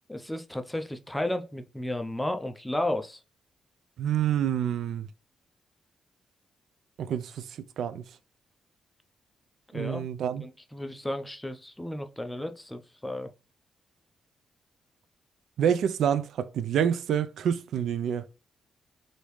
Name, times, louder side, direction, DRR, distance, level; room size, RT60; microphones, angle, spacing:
voice 1, 0.1-3.2 9.7-10.0 10.4-13.3, left 1 dB, 10° left, 0.4 m, -33 dB
voice 2, 4.0-5.1 7.0-8.0 9.7-10.4 15.6-18.3, right 9 dB, 75° right, 0.3 m, -27 dB
3.3 x 2.7 x 3.0 m
cardioid pair, 100°, 0 cm